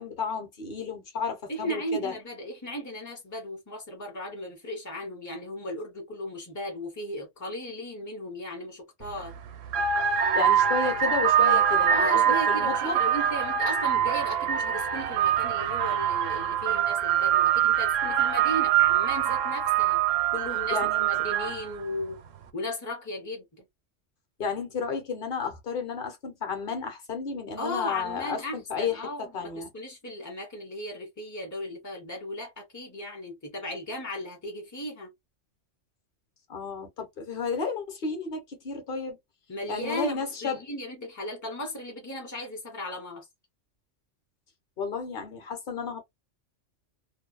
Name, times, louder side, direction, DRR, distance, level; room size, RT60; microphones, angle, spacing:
voice 1, 0.0-2.1 10.1-13.0 20.7-21.1 24.4-29.7 36.5-39.2 39.7-40.6 44.8-46.0, left 5 dB, 45° left, 1.0 m, -32 dB
voice 2, 1.5-9.4 11.9-20.0 20.3-22.2 22.5-23.5 27.6-35.1 39.5-43.3, left 1 dB, 25° left, 0.4 m, -36 dB
sound 1, 9.0-9.2 9.7-21.8, right 9 dB, 85° right, 0.9 m, -24 dB
2.7 x 2.2 x 2.3 m
omnidirectional pair, 1.3 m